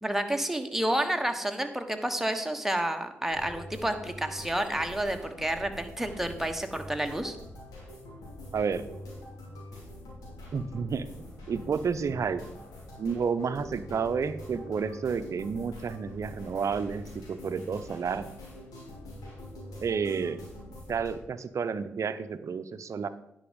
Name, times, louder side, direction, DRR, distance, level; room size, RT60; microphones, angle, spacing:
voice 1, 0.0-7.4, right 1 dB, 5° right, 5 dB, 1.4 m, -30 dB
sound 1, 3.3-21.1, left 1 dB, 80° left, 3.1 m, -45 dB
voice 2, 8.5-8.9 10.5-12.4 13.0-18.3 19.8-20.4 20.9-23.1, right 6 dB, 55° right, 13 dB, 0.7 m, -31 dB
10.0 x 5.6 x 5.2 m, 0.83 s
hypercardioid pair, 40°, 6 cm